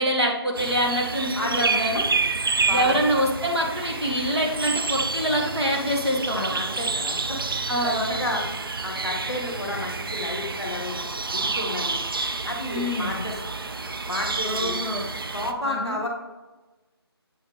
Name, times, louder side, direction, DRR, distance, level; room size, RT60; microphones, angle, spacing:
voice 1, 0.0-2.1 2.7-6.5 7.7-8.2 12.7-13.2 14.4-15.1 15.7-16.0, equal, 85° right, -2 dB, 1.9 m, -25 dB
sound 1, 0.5-15.5, right 4 dB, 60° right, 0.5 m, -29 dB
voice 2, 1.3-2.0 2.7-3.0 6.3-7.4 7.8-8.5 8.8-12.0 12.4-13.4 14.1-14.8 15.3-16.1, left 2 dB, ahead, -24 dB, 0.3 m, -31 dB
7.7 x 4.1 x 3.4 m, 1.1 s
figure-of-eight pair, 160°, 14 cm